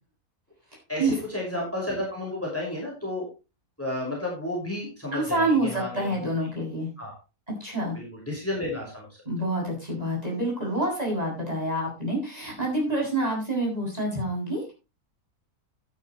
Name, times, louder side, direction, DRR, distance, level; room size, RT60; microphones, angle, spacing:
voice 1, 0.9-3.3 3.8-6.3 7.0-7.1 7.9-9.2, left 1 dB, 10° left, -2 dB, 5.7 m, -32 dB
voice 2, 5.1-6.9 7.6-8.0 9.3-14.7, right 1 dB, 25° right, -2 dB, 7.7 m, -27 dB
13.0 x 11.5 x 3.2 m, 0.29 s
omnidirectional pair, 1.6 m